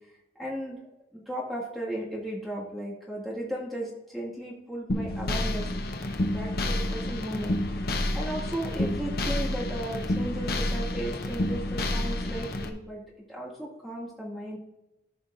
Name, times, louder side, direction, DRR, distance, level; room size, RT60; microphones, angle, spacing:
voice 1, 0.4-0.8 1.1-5.7 6.2-13.0 13.3-14.6, right 1 dB, ahead, -6 dB, 2.1 m, -36 dB
sound 1, 4.9-12.7, left 1 dB, 55° left, 0.8 m, -29 dB
14.0 x 5.6 x 2.7 m, 0.93 s
head